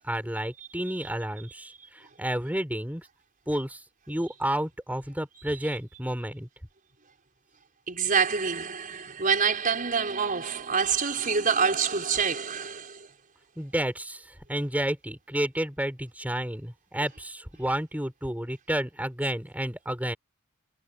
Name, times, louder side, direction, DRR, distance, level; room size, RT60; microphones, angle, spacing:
voice 1, 0.0-3.1 3.5-3.8 4.1-6.5 13.6-20.2, right 1 dB, 5° right, 5.8 m, -31 dB
voice 2, 7.9-13.1, right 6 dB, 40° right, 5.6 m, -26 dB
head